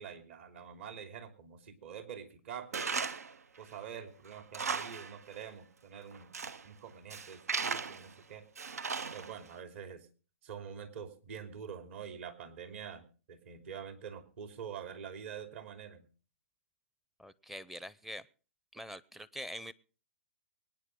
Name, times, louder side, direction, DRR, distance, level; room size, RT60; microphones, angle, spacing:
voice 1, 0.0-3.1 3.6-6.3 6.6-8.4 9.1-10.1 10.4-16.1, right 7 dB, 55° right, 7 dB, 3.1 m, -46 dB
Tools, 2.7-3.3 3.7-3.8 4.3-5.2 5.4-5.5 6.1-6.7 7.1-8.1 8.6-9.5, right 5 dB, 85° right, 0.8 m, -36 dB
voice 2, 17.2-18.3 18.7-19.7, equal, ahead, 18 dB, 0.6 m, -44 dB
23.5 x 9.9 x 3.7 m, 0.38 s
hypercardioid pair, 135°, 8 cm